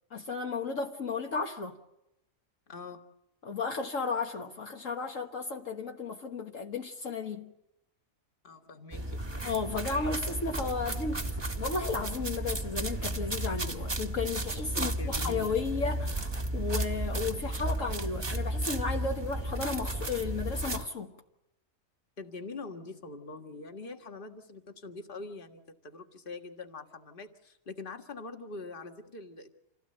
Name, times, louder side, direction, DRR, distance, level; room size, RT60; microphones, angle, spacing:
voice 1, 0.1-1.8 3.4-7.5 9.4-11.3 11.6-21.1, left 4 dB, 60° left, 1.7 m, -34 dB
voice 2, 2.7-3.0 8.4-9.3 14.7-15.6 22.2-29.5, left 3 dB, 35° left, 1.8 m, -44 dB
sound 1, 8.9-20.9, right 1 dB, 20° right, 1.0 m, -33 dB
27.5 x 16.5 x 7.8 m
omnidirectional pair, 1.5 m